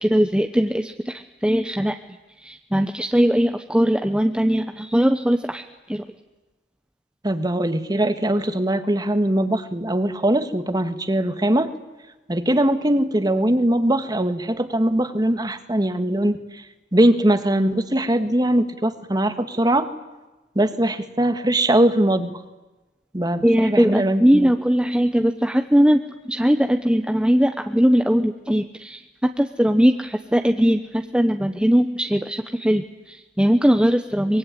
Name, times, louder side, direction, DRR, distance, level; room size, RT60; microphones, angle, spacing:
voice 1, 0.0-2.0 2.4-6.0 23.4-34.4, equal, 5° right, 6 dB, 1.0 m, -20 dB
voice 2, 7.2-11.7 12.3-16.6 16.9-19.9 20.6-22.3 23.1-23.4 23.7-24.5, right 1 dB, 20° right, 9 dB, 1.8 m, -21 dB
24.5 x 22.5 x 10.0 m, 1.1 s
head